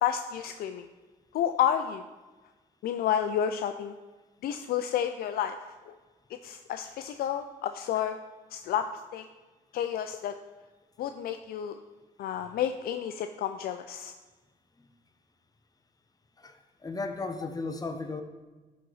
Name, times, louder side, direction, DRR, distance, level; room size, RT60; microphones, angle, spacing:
voice 1, 0.0-0.9 1.3-2.0 2.8-3.9 4.4-5.6 5.9-6.0 6.4-8.2 8.5-8.9 9.1-9.2 9.7-10.3 11.0-11.8 12.2-14.1, left 9 dB, 80° left, 8 dB, 0.4 m, -30 dB
voice 2, 16.8-18.2, left 3 dB, 25° left, 6 dB, 1.0 m, -34 dB
11.5 x 4.0 x 4.8 m, 1.2 s
cardioid pair, 75°, 15 cm